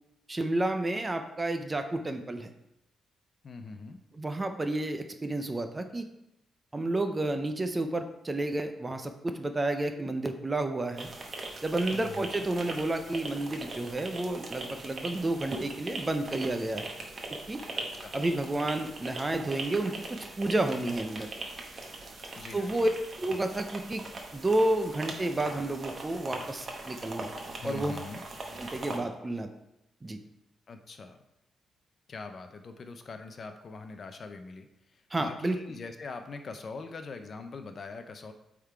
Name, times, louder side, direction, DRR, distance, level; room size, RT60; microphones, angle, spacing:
voice 1, 0.3-2.5 4.1-6.1 6.7-11.1 11.6-16.9 17.5-17.6 18.1-21.3 22.5-22.9 23.2-24.0 24.3-27.3 27.6-28.0 28.6-29.5 30.0-30.2 35.1-35.6, right 2 dB, 15° right, 7 dB, 0.4 m, -30 dB
voice 2, 3.4-4.0 11.9-12.5 17.7-18.2 22.4-22.9 27.6-28.2 30.7-31.2 32.1-34.7 35.2-38.3, left 4 dB, 35° left, 7 dB, 0.5 m, -42 dB
sound 1, 11.0-29.0, right 2 dB, 30° right, 1.0 m, -40 dB
8.3 x 3.7 x 4.5 m, 0.84 s
wide cardioid pair, 170°, 0 cm